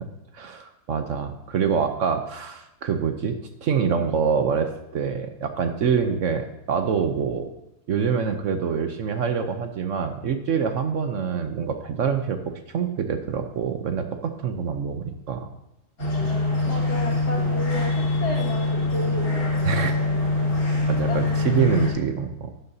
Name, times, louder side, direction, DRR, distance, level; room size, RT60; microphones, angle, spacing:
voice 1, 0.3-3.3 3.6-7.5 7.9-15.5 19.6-20.0 20.9-22.5, right 6 dB, 60° right, 7 dB, 0.9 m, -25 dB
sound 1, 16.0-21.9, left 2 dB, 65° left, 3.3 m, -23 dB
voice 2, 16.7-19.5 21.1-21.6, left 1 dB, 85° left, -2 dB, 2.6 m, -33 dB
12.0 x 9.8 x 2.7 m, 0.91 s
omnidirectional pair, 1.7 m